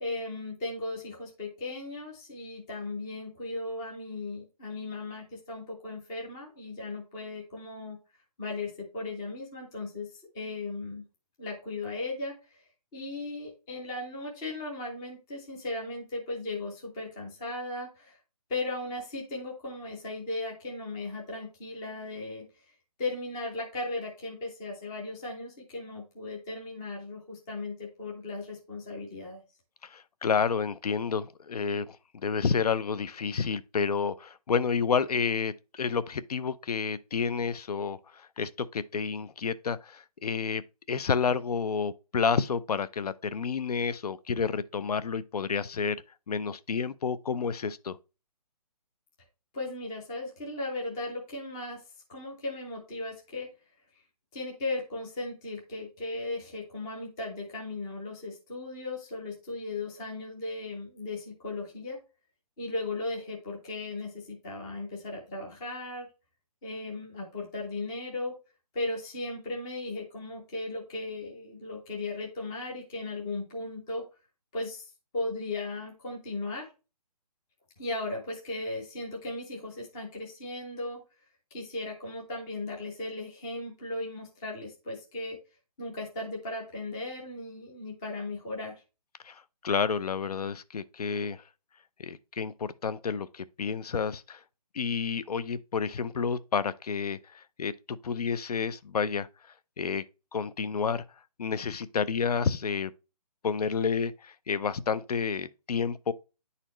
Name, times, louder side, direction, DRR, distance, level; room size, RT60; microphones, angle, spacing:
voice 1, 0.0-8.0 8.4-10.1 10.3-11.0 11.4-12.6 12.9-18.2 18.5-22.4 23.0-29.4 49.5-51.8 52.1-53.5 54.3-62.0 62.6-66.1 66.6-68.3 68.7-74.0 74.5-76.7 77.8-81.0 81.5-85.4 85.8-88.8, left 2 dB, 5° left, 0.5 m, -36 dB
voice 2, 29.8-40.6 40.9-46.0 46.3-48.0 89.2-91.4 92.0-94.4 94.7-99.3 99.8-100.0 100.3-101.0 101.4-102.9 103.4-106.1, left 6 dB, 65° left, 0.6 m, -30 dB
9.9 x 4.2 x 3.0 m
hypercardioid pair, 170°, 21 cm